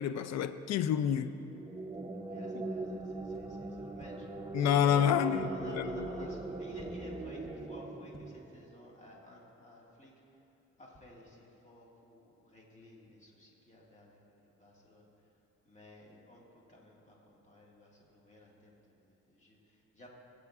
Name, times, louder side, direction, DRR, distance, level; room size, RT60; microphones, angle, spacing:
voice 1, 0.0-1.4 2.5-2.6 4.5-5.4 5.7-6.1, left 9 dB, 60° left, 0.5 m, -28 dB
sound 1, 1.5-8.9, right 2 dB, 15° right, 0.6 m, -41 dB
voice 2, 2.1-4.4 5.1-10.1 10.8-15.1 15.6-20.1, equal, 25° left, 2.0 m, -54 dB
sound 2, 3.3-3.4 4.0-4.1 4.7-4.8 5.4-5.5 6.0-6.1 6.7-6.8 7.4-7.5 8.0-8.2, right 1 dB, ahead, 0.9 m, -54 dB
17.0 x 8.5 x 2.4 m
cardioid pair, 90°, 30 cm